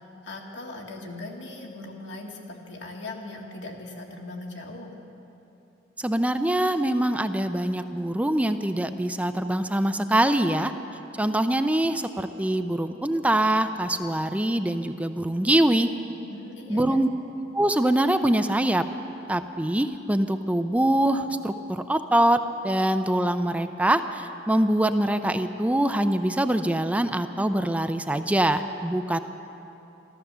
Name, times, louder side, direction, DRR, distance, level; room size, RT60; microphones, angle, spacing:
voice 1, 0.2-4.9 16.3-17.0, left 2 dB, 75° left, 0 dB, 1.9 m, -39 dB
voice 2, 6.0-10.7 11.2-15.9 16.7-17.1 17.5-18.8 19.3-29.2, right 1 dB, 10° right, 9 dB, 0.4 m, -24 dB
14.0 x 13.5 x 6.8 m, 2.9 s
head